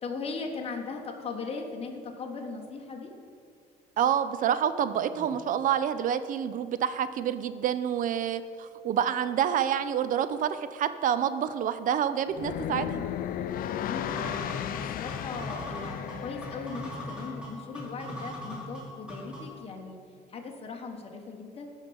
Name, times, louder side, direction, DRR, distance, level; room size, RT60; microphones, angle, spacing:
voice 1, 0.0-3.1 5.1-5.4 13.6-20.0 20.3-21.7, left 4 dB, 35° left, 1 dB, 1.2 m, -38 dB
voice 2, 4.0-13.0, right 9 dB, 50° right, 12 dB, 0.4 m, -28 dB
sound 1, 12.3-17.4, left 10 dB, 55° left, 0.4 m, -35 dB
sound 2, 14.1-19.6, left 1 dB, 5° right, 2.4 m, -40 dB
15.0 x 5.7 x 3.5 m, 2.3 s
cardioid pair, 110°, 17 cm